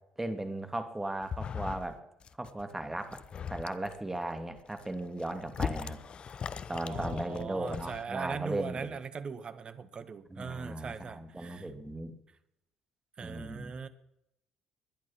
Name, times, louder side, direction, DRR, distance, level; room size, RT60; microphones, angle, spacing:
voice 1, 0.2-2.0 2.4-3.2 3.5-6.0 6.7-9.0 10.3-12.1 13.2-13.7, right 1 dB, 10° right, 7 dB, 2.9 m, -37 dB
sound 1, 1.2-2.0 2.2-2.6 3.0-4.0 4.5-8.0, left 7 dB, 45° left, 0.8 m, -39 dB
voice 2, 6.8-11.7 13.2-13.9, right 5 dB, 40° right, 13 dB, 1.5 m, -40 dB
21.0 x 11.0 x 6.1 m, 0.84 s
hypercardioid pair, 55°, 2 cm